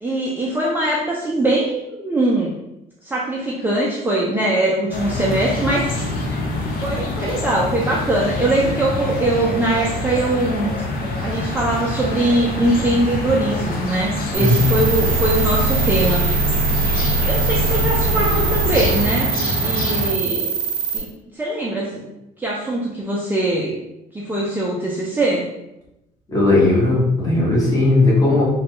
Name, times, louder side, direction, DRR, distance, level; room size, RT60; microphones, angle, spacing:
voice 1, 0.0-2.5 3.0-6.0 6.8-10.7 11.2-16.3 17.3-19.3 19.6-20.5 20.9-21.1 21.3-22.1 22.4-23.8 24.1-25.5, right 1 dB, 10° right, -5 dB, 0.5 m, -21 dB
sound 1, 4.9-20.1, left 2 dB, 55° left, 0.7 m, -26 dB
sound 2, 14.3-21.0, right 4 dB, 85° right, 0.7 m, -21 dB
voice 2, 14.4-14.7 26.3-28.4, left 2 dB, 20° left, -5 dB, 1.3 m, -16 dB
3.1 x 2.3 x 2.9 m, 0.89 s
cardioid pair, 100°, 17 cm